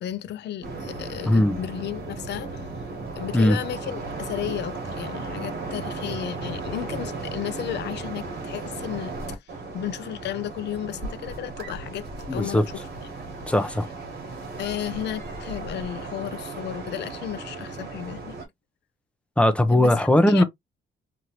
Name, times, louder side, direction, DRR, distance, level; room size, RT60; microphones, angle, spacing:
voice 1, 0.0-2.8 3.2-12.1 12.3-13.1 14.6-18.4 19.7-20.4, left 11 dB, 65° left, 0.5 m, -34 dB
sound 1, 0.6-18.5, right 3 dB, 55° right, 1.3 m, -35 dB
voice 2, 1.3-1.6 3.3-3.6 12.3-12.7 13.5-13.9 19.4-20.4, left 1 dB, 5° left, 0.5 m, -19 dB
3.1 x 2.5 x 2.8 m
cardioid pair, 150°, 19 cm